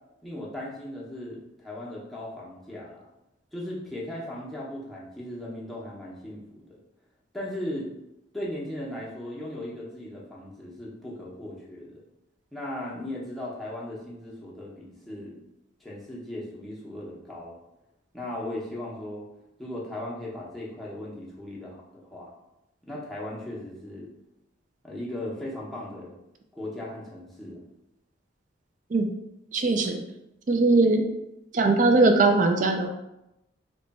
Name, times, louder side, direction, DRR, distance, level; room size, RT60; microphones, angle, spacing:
voice 1, 0.2-3.0 3.5-6.8 7.3-7.9 8.3-12.0 12.5-15.4 15.8-17.6 18.1-19.2 19.6-22.3 22.9-24.1 24.8-26.1 26.5-27.6, left 1 dB, ahead, -6 dB, 0.7 m, -37 dB
voice 2, 29.5-30.0 30.5-31.0 31.5-32.9, right 3 dB, 40° right, 4 dB, 0.4 m, -20 dB
3.0 x 2.3 x 4.0 m, 0.89 s
head